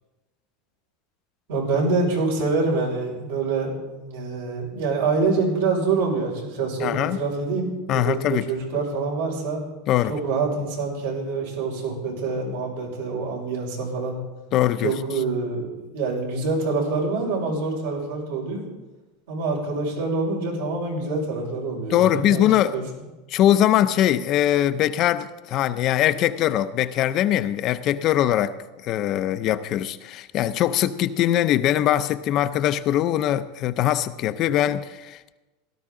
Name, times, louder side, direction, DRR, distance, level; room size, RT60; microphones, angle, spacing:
voice 1, 1.5-3.7 4.0-9.6 10.1-14.2 14.8-18.6 19.3-22.8, right 3 dB, 85° right, 5.3 m, -26 dB
voice 2, 6.8-7.2 7.9-8.5 9.9-10.1 14.5-15.0 21.9-22.8 23.3-28.5 28.8-35.3, left 12 dB, 40° left, 0.5 m, -22 dB
17.0 x 12.5 x 3.8 m
supercardioid pair, 145°, 0 cm